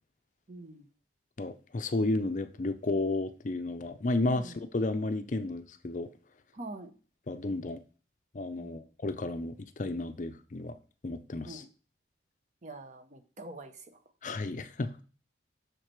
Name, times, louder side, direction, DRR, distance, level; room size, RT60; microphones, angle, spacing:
voice 1, 0.5-0.8 4.3-4.5 6.5-6.9 8.6-8.8 11.4-11.7 12.6-13.7, right 2 dB, 40° right, 8 dB, 0.9 m, -44 dB
voice 2, 1.4-6.1 7.3-7.8 8.3-10.8 11.0-11.6 14.2-14.9, left 2 dB, 40° left, 11 dB, 0.5 m, -32 dB
6.5 x 4.9 x 4.5 m, 0.36 s
head